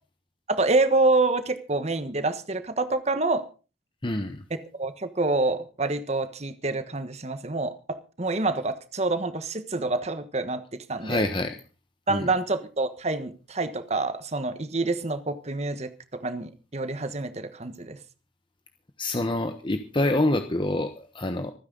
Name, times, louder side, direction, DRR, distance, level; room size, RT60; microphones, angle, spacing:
voice 1, 0.5-3.4 4.7-11.3 12.1-18.0, right 2 dB, 40° right, 10 dB, 1.3 m, -27 dB
voice 2, 4.0-4.4 11.0-11.6 12.1-12.3 19.0-21.5, left 1 dB, 30° left, 6 dB, 1.1 m, -26 dB
26.0 x 9.8 x 4.0 m, 0.34 s
head